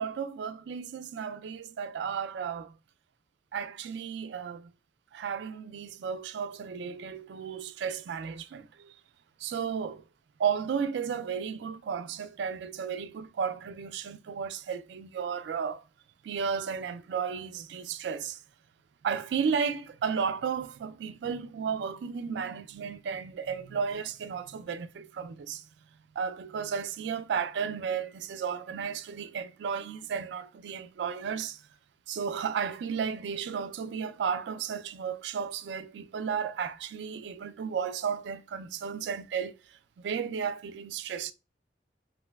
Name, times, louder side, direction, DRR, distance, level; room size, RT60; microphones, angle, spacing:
voice 1, 0.0-2.7 3.5-4.7 5.1-8.9 9.4-10.1 10.4-15.8 16.2-18.4 19.0-25.6 26.2-31.6 32.1-41.3, right 6 dB, 80° right, 0.3 m, -33 dB
3.0 x 2.5 x 2.2 m
head